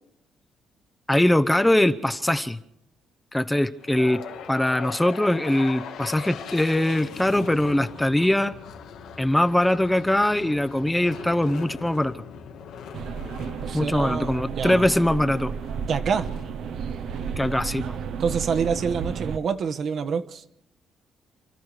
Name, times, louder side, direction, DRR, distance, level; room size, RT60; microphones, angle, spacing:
voice 1, 1.1-2.6 3.3-8.6 9.2-12.2 13.7-15.5 17.4-18.0, left 1 dB, 5° left, 9 dB, 0.9 m, -22 dB
sound 1, 3.8-18.0, left 7 dB, 85° left, 2.2 m, -40 dB
sound 2, 12.9-19.4, right 6 dB, 70° right, 1.1 m, -32 dB
voice 2, 13.6-14.8 15.9-16.3 18.2-20.4, right 6 dB, 55° right, 7 dB, 1.4 m, -27 dB
30.0 x 13.0 x 6.6 m, 0.83 s
cardioid pair, 105°, 0 cm